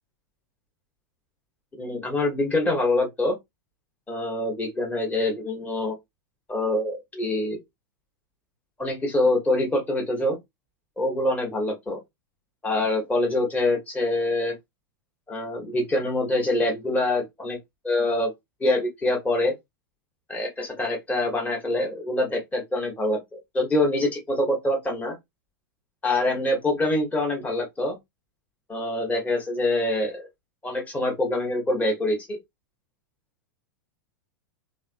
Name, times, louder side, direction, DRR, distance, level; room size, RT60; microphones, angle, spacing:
voice 1, 1.8-3.4 4.1-5.9 6.5-7.6 8.8-10.4 11.0-12.0 12.6-14.5 15.3-17.6 17.8-18.3 18.6-19.5 20.3-23.2 23.5-25.1 26.0-28.0 28.7-30.3 30.6-32.4, left 1 dB, 15° left, 1.2 m, -25 dB
3.2 x 2.7 x 2.5 m
hypercardioid pair, 100°, 11 cm